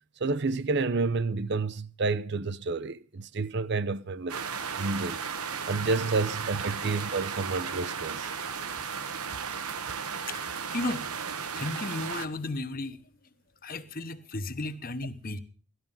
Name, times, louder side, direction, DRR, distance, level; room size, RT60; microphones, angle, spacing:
voice 1, 0.2-4.5 4.8-5.2 5.7-8.3, right 3 dB, 50° right, 0.6 m, -29 dB
sound 1, 4.3-12.3, right 6 dB, 85° right, 1.1 m, -35 dB
voice 2, 10.3-11.1 11.5-13.0 13.6-15.4, left 2 dB, 40° left, 1.1 m, -34 dB
18.0 x 13.0 x 5.5 m
head